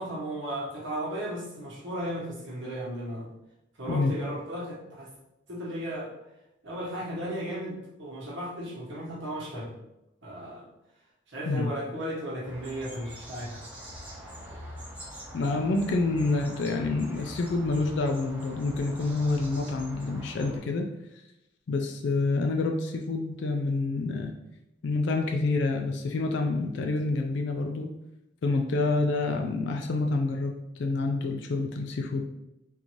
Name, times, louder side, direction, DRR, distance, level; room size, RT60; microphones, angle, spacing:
voice 1, 0.0-3.3 3.8-5.1 5.5-6.1 6.6-9.7 10.2-10.7 11.3-13.6, equal, 70° right, -5 dB, 1.1 m, -35 dB
sound 1, 12.4-20.6, equal, 10° right, 0.8 m, -44 dB
voice 2, 15.3-20.9 21.7-24.3 24.8-27.9 28.4-32.2, left 3 dB, 65° left, 3 dB, 0.4 m, -27 dB
3.7 x 2.6 x 3.0 m, 0.88 s
head